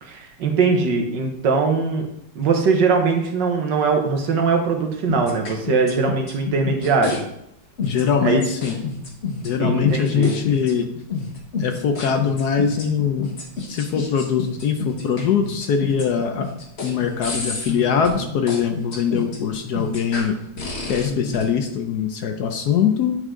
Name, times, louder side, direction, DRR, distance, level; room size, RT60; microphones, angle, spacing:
voice 1, 0.0-2.1 2.4-7.2 8.2-8.4 9.6-10.4, right 4 dB, 70° right, 3 dB, 1.8 m, -21 dB
sound 1, 5.1-7.2 7.8-21.5, left 4 dB, 35° left, 1.4 m, -29 dB
voice 2, 7.8-8.8 9.4-10.9 11.6-13.3 13.7-16.4 16.8-20.3 20.9-23.2, left 7 dB, 65° left, 5 dB, 1.1 m, -22 dB
9.9 x 5.3 x 3.7 m, 0.78 s
omnidirectional pair, 2.1 m